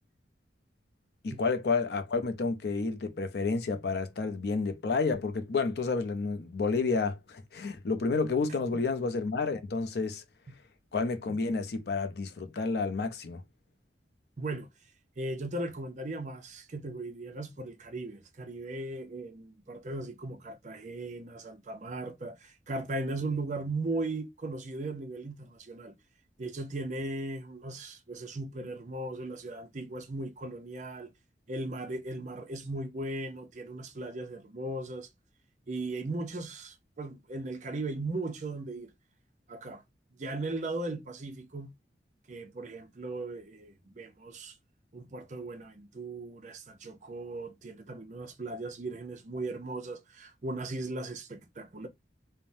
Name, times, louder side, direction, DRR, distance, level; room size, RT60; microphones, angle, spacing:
voice 1, 1.2-10.2 10.9-13.4, left 4 dB, 65° left, 0.5 m, -30 dB
voice 2, 14.4-14.7 15.2-25.9 26.4-31.1 31.5-35.1 35.7-38.9 39.5-39.8 40.1-41.7 42.3-44.6 44.9-51.9, right 2 dB, 45° right, 0.5 m, -37 dB
3.2 x 2.1 x 2.6 m
head